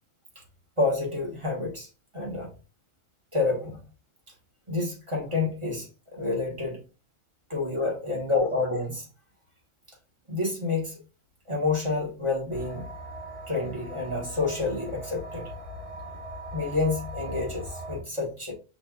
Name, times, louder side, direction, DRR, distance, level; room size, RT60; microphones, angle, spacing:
voice 1, 0.8-1.9 2.1-2.5 3.3-3.8 4.7-6.8 7.5-9.0 10.3-11.0 11.5-12.9 13.5-15.5 16.5-18.5, left 3 dB, 25° right, -2 dB, 1.6 m, -28 dB
sound 1, 12.5-18.0, equal, 60° right, 2.0 m, -39 dB
5.8 x 3.5 x 2.4 m, 0.32 s
omnidirectional pair, 1.4 m